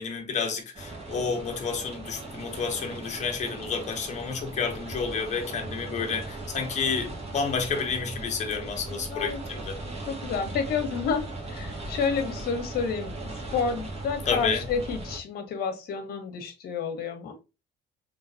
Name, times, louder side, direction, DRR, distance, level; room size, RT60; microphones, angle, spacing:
voice 1, 0.0-9.8 14.3-14.7, left 5 dB, 45° left, 1.2 m, -30 dB
sound 1, 0.7-15.2, right 2 dB, 40° right, 1.7 m, -38 dB
voice 2, 8.9-9.4 10.1-17.4, left 5 dB, 65° left, 1.2 m, -30 dB
3.8 x 3.4 x 2.6 m
cardioid pair, 110°, 17 cm